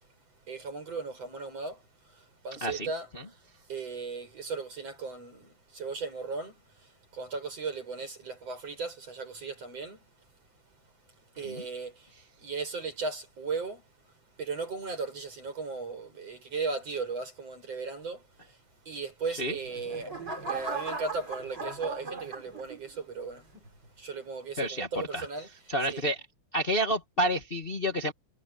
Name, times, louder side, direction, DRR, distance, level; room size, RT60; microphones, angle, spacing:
voice 1, 0.5-1.8 2.1-3.1 3.7-10.0 11.4-13.8 14.4-18.2 18.5-18.6 18.9-23.5 24.0-25.5 25.9-26.0, right 4 dB, 55° right, 8.7 m, -37 dB
voice 2, 2.5-3.2 11.4-11.6 19.3-19.6 24.6-24.9 25.1-25.3 25.7-26.2 26.5-28.1, equal, 20° left, 1.7 m, -29 dB
sound 1, 19.4-23.0 23.5-23.9, right 4 dB, 35° right, 4.9 m, -38 dB
omnidirectional pair, 3.3 m